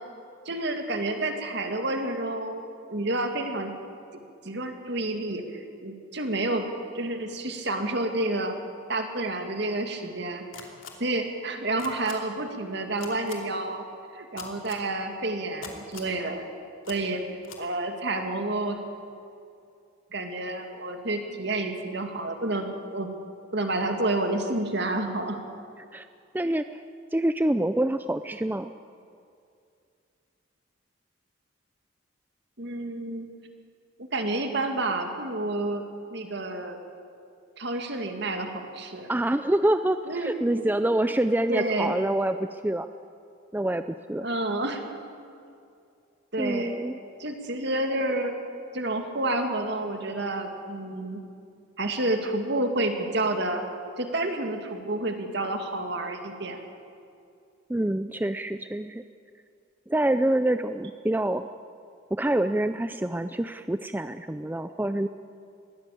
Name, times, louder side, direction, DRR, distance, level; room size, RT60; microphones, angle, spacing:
voice 1, 0.5-3.7 4.4-6.6 6.9-8.6 8.9-10.7 11.0-13.9 14.1-16.5 16.9-17.2 17.6-18.8 20.1-23.1 23.5-25.4 32.6-33.3 34.1-35.8 36.1-36.8 37.6-39.1 40.1-40.3 41.5-41.9 44.2-44.8 46.3-46.8 47.2-48.4 48.7-51.2 51.8-53.6 54.0-56.6, right 2 dB, 55° right, 5 dB, 2.3 m, -29 dB
sound 1, 10.5-10.9 11.8-12.1 13.0-13.3 14.4-14.8 15.6-16.1 16.8-17.0 17.4-17.6, left 7 dB, 85° left, 2.8 m, -41 dB
voice 2, 26.3-26.8 27.1-28.7 39.1-40.0 40.3-42.9 43.5-44.3 46.4-47.0 57.7-59.0 59.9-61.4 62.1-65.1, right 1 dB, 10° right, 10 dB, 0.4 m, -26 dB
21.5 x 16.5 x 8.5 m, 2.5 s
head